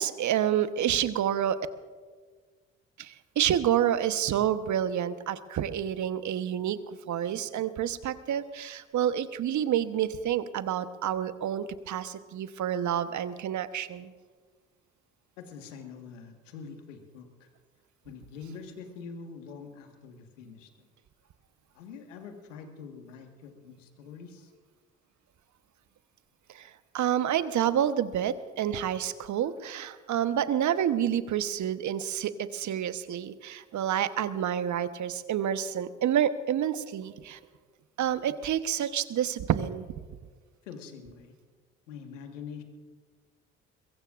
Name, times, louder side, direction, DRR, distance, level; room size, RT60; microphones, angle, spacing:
voice 1, 0.0-1.6 3.0-14.1 26.5-26.7 26.9-37.4 38.0-39.8, right 10 dB, 50° right, 12 dB, 1.1 m, -28 dB
voice 2, 15.4-17.5 18.0-20.9 21.7-24.5 40.6-41.3 41.9-42.6, left 5 dB, 85° left, 5 dB, 1.7 m, -45 dB
22.5 x 22.0 x 2.6 m, 1.5 s
hypercardioid pair, 50°, 37 cm